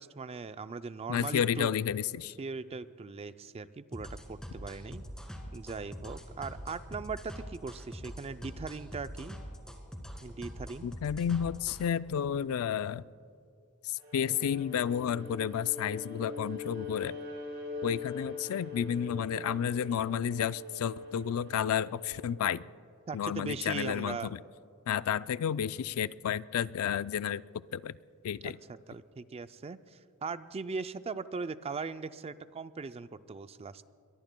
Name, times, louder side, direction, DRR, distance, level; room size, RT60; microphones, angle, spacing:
voice 1, 0.0-1.7 2.4-5.1 5.5-9.4 10.2-10.9 23.1-24.3 28.4-33.9, right 4 dB, 25° right, 12 dB, 0.4 m, -39 dB
voice 2, 1.1-2.3 10.8-13.0 13.8-17.2 17.8-22.7 23.1-24.4 24.9-27.4 27.7-27.9 28.2-28.6, left 8 dB, 70° left, 17 dB, 0.3 m, -31 dB
sound 1, 3.9-11.9, equal, 5° left, 1.9 m, -44 dB
Bowed string instrument, 14.0-22.3, left 3 dB, 70° right, 3.5 m, -42 dB
23.0 x 22.0 x 2.2 m, 2.4 s
head